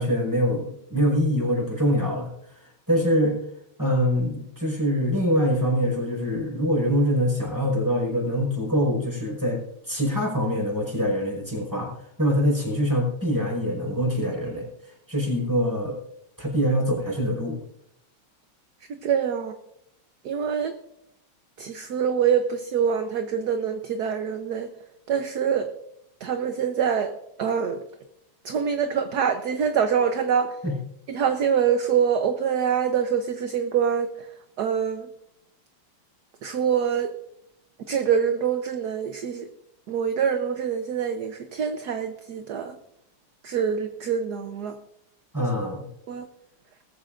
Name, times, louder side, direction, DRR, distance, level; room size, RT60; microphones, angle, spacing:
voice 1, 0.0-2.3 2.9-3.4 3.8-11.9 12.2-14.7 15.1-16.0 16.4-17.6 30.6-30.7 45.3-45.8, equal, 10° right, -1 dB, 5.4 m, -24 dB
voice 2, 19.0-19.6 20.2-20.7 21.6-24.7 25.1-25.7 26.2-27.1 27.4-27.8 28.4-30.5 31.1-34.3 34.6-35.1 36.4-37.1 37.9-39.5 39.9-42.8 43.4-44.8 46.1-46.3, right 7 dB, 60° right, 7 dB, 1.3 m, -25 dB
19.5 x 15.0 x 2.6 m, 0.77 s
omnidirectional pair, 2.4 m